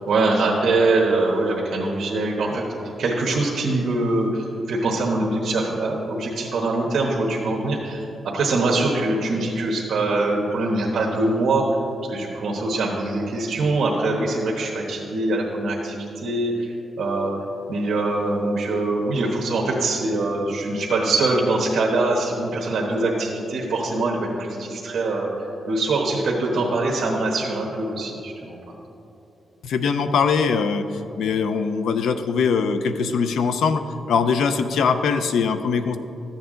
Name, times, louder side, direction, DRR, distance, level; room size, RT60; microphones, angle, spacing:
voice 1, 0.1-2.6 3.0-11.6 12.1-17.3 17.7-28.6, right 2 dB, 60° right, -3 dB, 1.2 m, -23 dB
voice 2, 29.6-36.0, left 5 dB, 85° left, 9 dB, 0.5 m, -22 dB
13.0 x 8.0 x 3.8 m, 2.9 s
wide cardioid pair, 145°, 0 cm